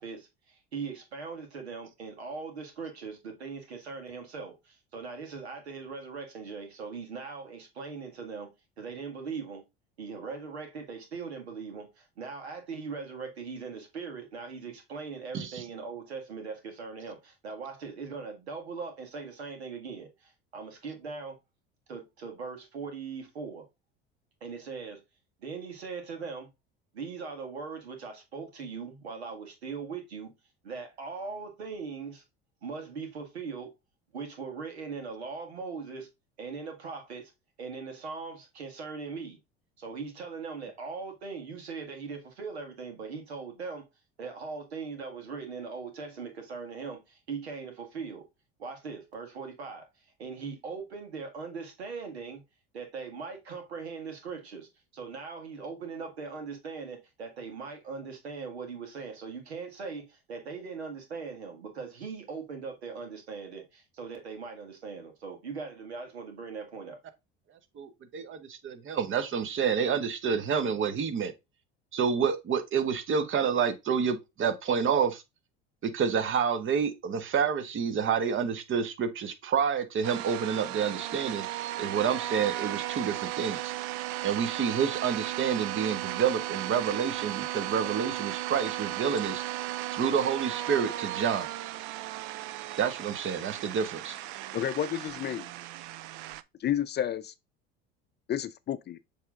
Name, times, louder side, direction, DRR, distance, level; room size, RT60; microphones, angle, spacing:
voice 1, 0.0-8.5 8.8-9.6 10.0-21.4 21.9-23.7 24.4-25.0 25.4-26.5 26.9-30.3 30.6-32.2 32.6-33.7 34.1-36.1 36.4-37.3 37.6-39.4 39.8-43.9 44.2-48.3 48.6-52.4 52.7-67.0, right 5 dB, 90° right, 1.9 m, -40 dB
voice 2, 67.8-71.3 71.9-75.2 75.8-81.5 81.8-83.7 84.2-89.4 89.9-91.5 92.8-94.2, right 7 dB, 40° right, 1.2 m, -28 dB
sound 1, 80.0-96.4, right 15 dB, 60° right, 0.6 m, -36 dB
voice 3, 94.5-95.5 96.6-97.3 98.3-99.0, left 10 dB, 35° left, 0.6 m, -31 dB
7.3 x 3.6 x 3.6 m
hypercardioid pair, 75°, 31 cm